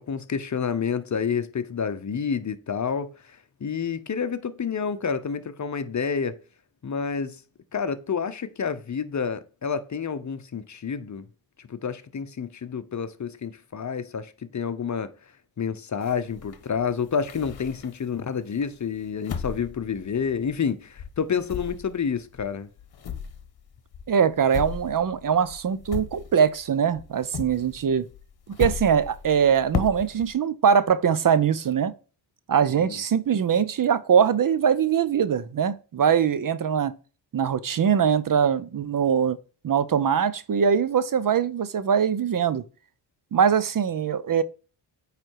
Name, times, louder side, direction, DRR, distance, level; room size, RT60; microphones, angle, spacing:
voice 1, 0.0-6.4 6.8-7.4 7.7-11.3 11.7-15.1 15.6-22.7 32.8-33.0, left 6 dB, 40° left, 0.8 m, -29 dB
sound 1, 16.0-18.2 18.6-20.7 21.0-26.7 26.9-30.3, left 7 dB, 55° left, 1.1 m, -36 dB
voice 2, 24.1-28.1 28.6-31.9 32.5-36.9 37.3-39.4 39.6-42.6 43.3-44.4, right 7 dB, 45° right, 0.6 m, -22 dB
8.7 x 3.3 x 4.7 m
cardioid pair, 60°, 45 cm